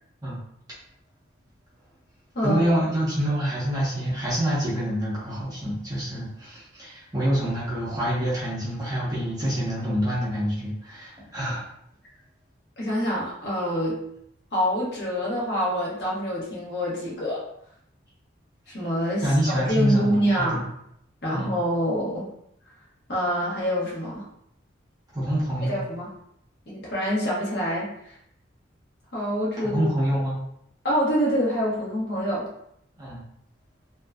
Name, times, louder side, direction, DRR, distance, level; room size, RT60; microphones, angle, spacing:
voice 1, 2.4-11.6 19.2-20.7 21.3-21.6 25.1-25.8 29.6-30.4 33.0-33.2, equal, 20° right, -8 dB, 0.7 m, -26 dB
voice 2, 12.8-14.0 14.5-17.4 18.7-20.6 21.2-22.3 23.1-24.2 25.6-26.1 26.7-27.9 29.1-29.9 30.8-32.5, equal, 55° left, -6 dB, 1.0 m, -26 dB
2.7 x 2.2 x 2.3 m, 0.72 s
head